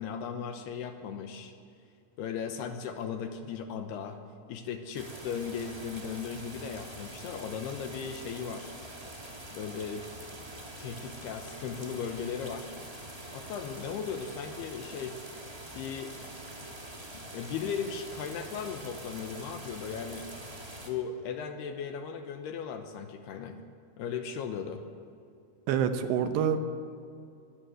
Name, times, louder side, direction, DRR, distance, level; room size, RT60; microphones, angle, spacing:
voice 1, 0.0-1.5 2.2-4.2 4.5-8.7 9.5-10.1 10.8-12.8 13.3-15.2 15.8-16.1 17.1-20.3 20.8-23.6 24.0-24.8, left 7 dB, 75° left, 7 dB, 2.7 m, -37 dB
sound 1, 4.9-20.9, right 1 dB, 50° right, 0.4 m, -45 dB
voice 2, 25.7-26.6, right 8 dB, 75° right, 8 dB, 3.0 m, -26 dB
22.5 x 13.0 x 9.1 m, 2.4 s
omnidirectional pair, 5.3 m